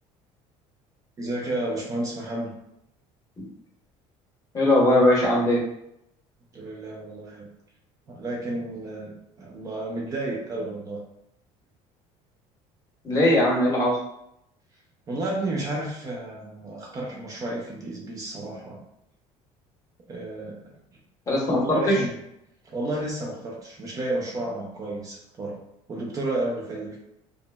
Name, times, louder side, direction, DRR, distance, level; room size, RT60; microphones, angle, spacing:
voice 1, 1.2-2.6 6.5-7.5 8.1-11.0 15.1-18.8 20.1-20.7 21.5-22.1 22.7-25.6 25.9-27.0, right 1 dB, 25° right, -2 dB, 0.4 m, -31 dB
voice 2, 4.5-5.6 13.0-13.9 21.3-21.9, left 1 dB, 25° left, -3 dB, 0.7 m, -20 dB
2.9 x 2.3 x 2.2 m, 0.79 s
cardioid pair, 165°, 13 cm